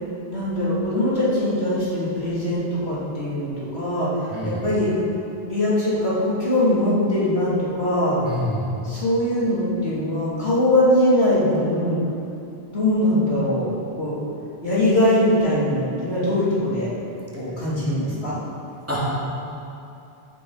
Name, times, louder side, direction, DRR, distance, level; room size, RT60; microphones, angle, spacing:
voice 1, 0.3-4.9 5.4-8.2 8.8-12.0 12.7-14.2 14.6-16.9 17.4-18.4, left 1 dB, 85° left, -8 dB, 3.5 m, -21 dB
voice 2, 4.3-4.6 8.2-8.7 18.9-19.0, left 1 dB, 15° right, -8 dB, 2.8 m, -27 dB
15.0 x 7.8 x 5.0 m, 2.7 s
omnidirectional pair, 1.0 m